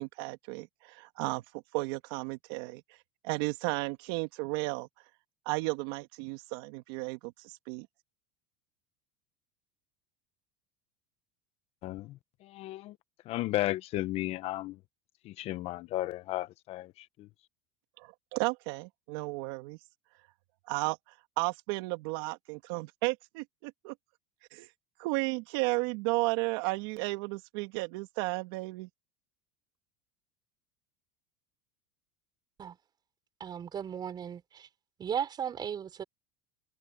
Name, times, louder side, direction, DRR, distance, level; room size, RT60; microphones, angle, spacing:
voice 1, 0.0-1.4 1.7-2.8 3.2-4.9 5.5-7.9 18.0-19.8 20.7-21.0 21.4-23.9 24.5-24.7 25.0-28.9, right 25 dB, 70° right, 2.4 m, -33 dB
voice 2, 11.8-13.0 13.2-14.8 15.2-17.3, left 16 dB, 50° left, 1.2 m, -34 dB
voice 3, 33.4-34.7 35.0-36.0, right 8 dB, 35° right, 5.2 m, -36 dB
supercardioid pair, 105°, 13 cm